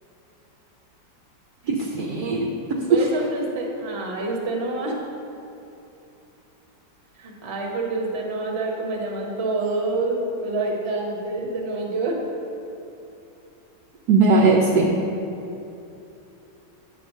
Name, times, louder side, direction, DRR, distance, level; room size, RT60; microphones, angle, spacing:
voice 1, 1.7-2.5 2.9-3.1 14.1-15.0, right 3 dB, 70° right, 0 dB, 1.0 m, -19 dB
voice 2, 2.9-5.0 7.2-12.2, right 2 dB, 40° right, -1 dB, 1.1 m, -27 dB
8.7 x 3.1 x 6.2 m, 2.8 s
omnidirectional pair, 2.0 m